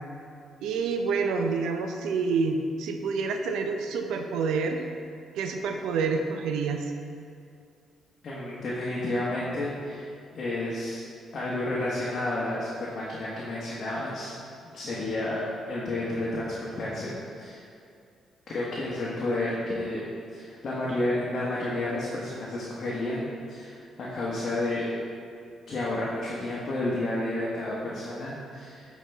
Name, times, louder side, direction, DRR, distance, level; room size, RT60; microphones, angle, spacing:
voice 1, 0.6-4.8 5.4-6.9, right 4 dB, 85° right, 5 dB, 0.5 m, -28 dB
voice 2, 8.2-10.1 10.3-11.0 11.3-14.3 14.7-15.4 15.7-17.6 18.5-20.0 20.3-24.9 25.7-28.8, left 1 dB, 50° left, -7 dB, 1.1 m, -31 dB
7.2 x 4.5 x 3.4 m, 2.4 s
cardioid pair, 90°, 0 cm